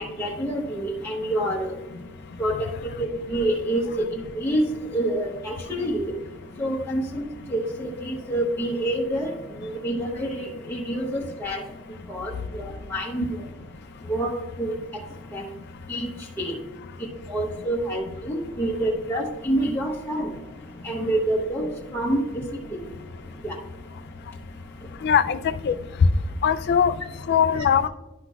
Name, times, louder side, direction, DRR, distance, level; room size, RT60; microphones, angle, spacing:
voice 1, 0.0-1.7 2.4-2.7 3.0-6.1 6.6-9.3 9.6-11.6 12.1-12.6 12.9-13.4 14.1-14.8 15.3-15.4 15.9-16.1 16.4-16.6 17.3-20.3 20.8-21.7 21.9-22.4 22.7-22.8 23.4-23.6 27.6-27.7, right 1 dB, 10° left, 0.8 m, -27 dB
voice 2, 25.0-25.8 26.4-26.9 27.3-27.9, left 7 dB, 50° left, 0.3 m, -21 dB
11.0 x 5.8 x 2.3 m
head